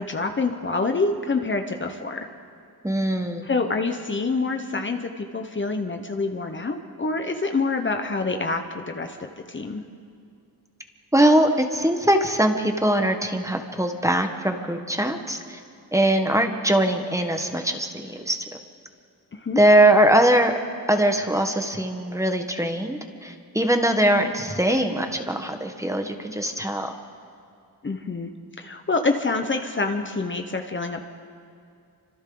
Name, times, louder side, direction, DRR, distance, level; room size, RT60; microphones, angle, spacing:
voice 1, 0.0-2.3 3.4-9.8 19.3-19.6 27.8-28.3 28.6-31.0, left 3 dB, 30° left, 5 dB, 1.1 m, -26 dB
voice 2, 2.8-3.5 11.1-15.6 15.9-18.4 19.6-20.5 20.9-26.9, right 1 dB, 10° right, 5 dB, 1.3 m, -21 dB
29.0 x 25.5 x 3.9 m, 2.4 s
wide cardioid pair, 135°, 37 cm